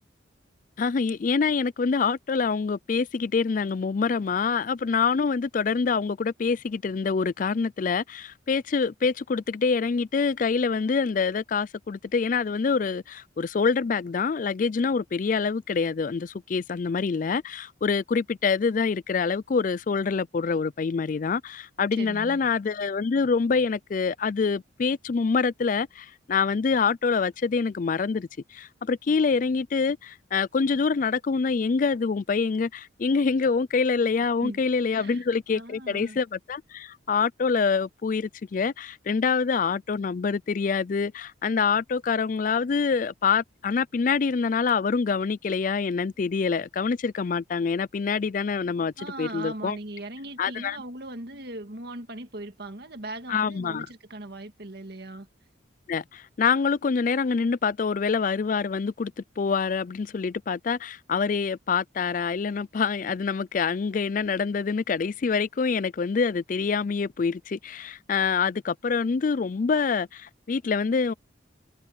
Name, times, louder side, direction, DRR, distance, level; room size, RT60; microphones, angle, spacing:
voice 1, 0.8-49.8 50.4-50.8 53.3-53.9 55.9-71.1, left 5 dB, 45° left, 0.4 m, -26 dB
voice 2, 21.9-22.4 34.4-34.6 34.9-36.2 49.0-55.3, right 2 dB, 55° right, 1.9 m, -39 dB
head